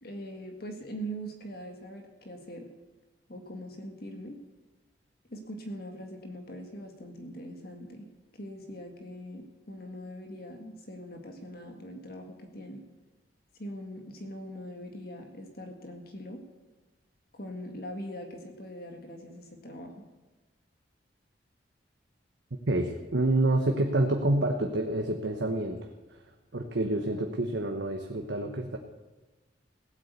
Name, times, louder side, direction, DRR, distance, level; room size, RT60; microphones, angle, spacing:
voice 1, 0.0-2.7 3.3-4.4 5.3-8.1 8.3-12.8 13.6-16.4 17.3-20.1, equal, 55° left, 4 dB, 1.9 m, -42 dB
voice 2, 22.7-25.8 26.5-28.8, right 2 dB, 85° right, 3 dB, 1.1 m, -27 dB
16.5 x 8.4 x 8.3 m, 1.2 s
head